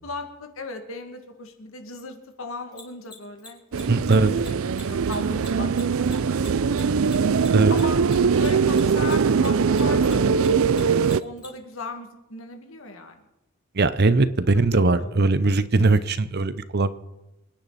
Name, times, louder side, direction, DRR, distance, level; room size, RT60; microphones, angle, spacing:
voice 1, 0.0-5.7 6.0-7.0 7.7-13.2 14.7-15.2, left 3 dB, 75° left, 5 dB, 2.2 m, -37 dB
Mechanisms, 2.7-9.5 9.7-11.5, left 3 dB, 20° left, 4.7 m, -43 dB
sound 1, 3.7-11.2, right 5 dB, 75° right, 0.5 m, -21 dB
voice 2, 3.9-4.3 7.5-7.7 13.8-17.0, right 3 dB, 50° right, 14 dB, 0.8 m, -20 dB
26.5 x 10.0 x 4.2 m, 0.97 s
head